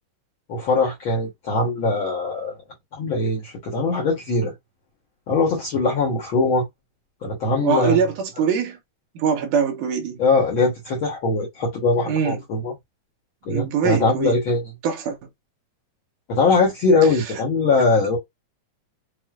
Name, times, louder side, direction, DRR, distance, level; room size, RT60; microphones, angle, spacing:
voice 1, 0.5-2.5 2.9-4.5 5.3-6.6 7.2-8.0 10.2-12.7 13.4-14.6 16.3-18.2, left 3 dB, 60° left, 1.3 m, -21 dB
voice 2, 7.6-8.8 9.2-10.2 12.1-12.4 13.5-14.3 14.8-15.2 17.2-17.3, right 6 dB, 80° right, 2.5 m, -23 dB
6.1 x 2.4 x 2.3 m
omnidirectional pair, 3.6 m